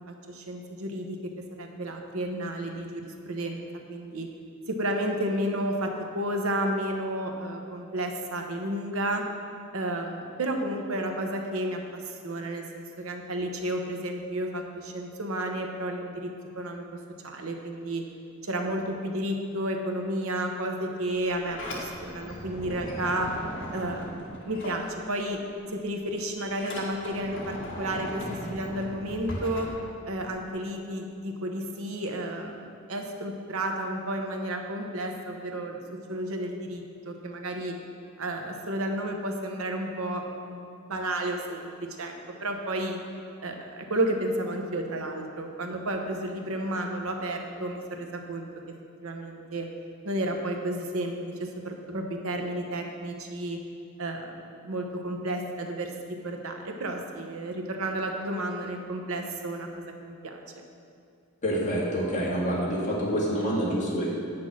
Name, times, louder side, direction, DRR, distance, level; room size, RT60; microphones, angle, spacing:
voice 1, 0.1-1.3 1.6-4.3 4.7-9.2 9.7-17.0 17.2-18.0 18.4-23.3 23.7-25.4 25.7-29.7 30.1-35.8 36.1-37.7 38.2-41.7 42.0-42.1 42.4-43.0 43.4-48.5 49.0-49.7 50.0-53.6 54.0-54.4 54.6-60.6, right 1 dB, 80° right, 3 dB, 1.0 m, -32 dB
Sliding door, 21.1-25.4 25.7-30.5, equal, 65° left, 1.7 m, -39 dB
voice 2, 61.4-64.1, equal, 35° left, -6 dB, 2.3 m, -27 dB
8.9 x 6.1 x 6.2 m, 2.4 s
head